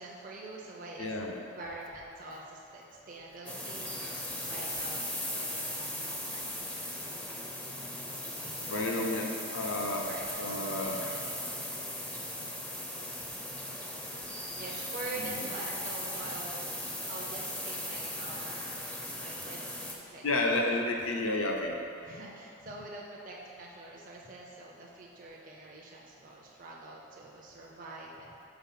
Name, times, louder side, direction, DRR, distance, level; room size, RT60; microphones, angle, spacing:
voice 1, 0.0-1.1 1.5-4.0 4.4-6.8 8.3-9.0 10.1-11.7 14.5-16.6 17.1-18.6 19.2-19.6 19.9-20.8 22.0-28.5, right 2 dB, 40° right, -3 dB, 0.5 m, -45 dB
voice 2, 1.0-1.4 8.7-10.0 10.3-11.1 15.1-15.5 20.2-21.8, left 2 dB, 75° left, 1 dB, 0.8 m, -31 dB
sound 1, 3.5-20.0, left 1 dB, 5° left, 0.5 m, -38 dB
5.8 x 4.0 x 5.7 m, 2.7 s
head